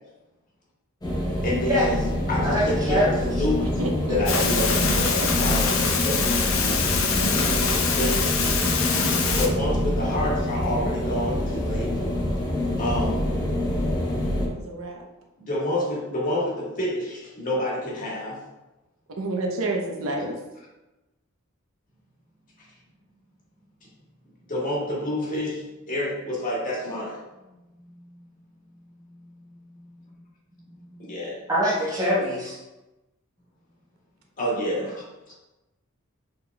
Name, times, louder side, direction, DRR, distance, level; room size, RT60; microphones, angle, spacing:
sound 1, 1.0-14.5, left 1 dB, 20° left, 0.8 m, -26 dB
voice 1, 1.4-2.0 2.3-3.8 4.0-4.7 5.4-6.2 7.9-8.3 9.3-11.9 12.8-13.3 15.4-18.4 24.5-25.6 25.9-27.2 30.9-31.4 34.4-35.0, left 1 dB, 40° left, -5 dB, 1.5 m, -28 dB
voice 2, 2.4-3.3 31.5-32.5, equal, 15° right, -8 dB, 1.2 m, -24 dB
voice 3, 3.6-5.3 14.4-15.0 19.2-20.4, right 1 dB, 75° right, 1 dB, 0.7 m, -29 dB
sound 2, 4.3-9.5, left 5 dB, 75° left, 0.6 m, -24 dB
6.7 x 3.5 x 2.3 m, 1.0 s
head